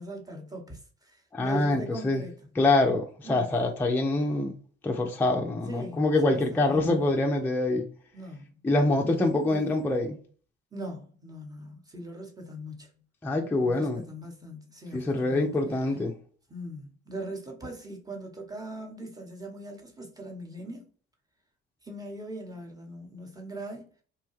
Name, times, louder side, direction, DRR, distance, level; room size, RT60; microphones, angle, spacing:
voice 1, 0.0-2.4 3.2-3.5 5.7-7.1 8.1-9.8 10.7-12.9 13.6-16.0 16.5-20.9 21.8-23.9, right 1 dB, 10° right, 0.9 m, -41 dB
voice 2, 1.3-2.2 2.6-4.5 4.8-7.9 8.6-10.2 13.2-14.0 14.9-16.1, left 2 dB, 5° left, 0.4 m, -25 dB
2.8 x 2.2 x 3.0 m
hypercardioid pair, 60°, 32 cm